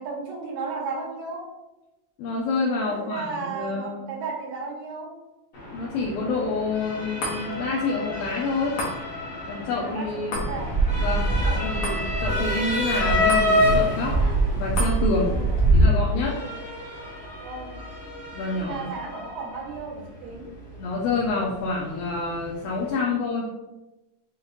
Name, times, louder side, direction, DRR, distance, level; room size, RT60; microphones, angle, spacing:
voice 1, 0.0-1.5 2.9-5.2 9.7-10.8 11.2-11.7 15.2-15.6 16.3-16.6 17.4-17.8 18.6-20.5, right 4 dB, 75° right, -2 dB, 2.3 m, -35 dB
voice 2, 2.2-4.1 5.7-8.8 9.5-10.3 11.0-14.2 14.6-15.3 15.7-16.4 18.3-18.9 20.8-23.5, left 3 dB, 85° left, -2 dB, 2.3 m, -28 dB
Motor vehicle (road) / Siren, 5.5-22.9, left 2 dB, 45° left, 1.6 m, -30 dB
sound 1, 7.2-19.8 20.2-20.3, left 1 dB, 60° left, 2.0 m, -39 dB
Fixed-wing aircraft airplane, 10.3-15.8, right 3 dB, 50° right, 1.2 m, -24 dB
6.4 x 2.4 x 3.0 m, 1.0 s
omnidirectional pair, 4.1 m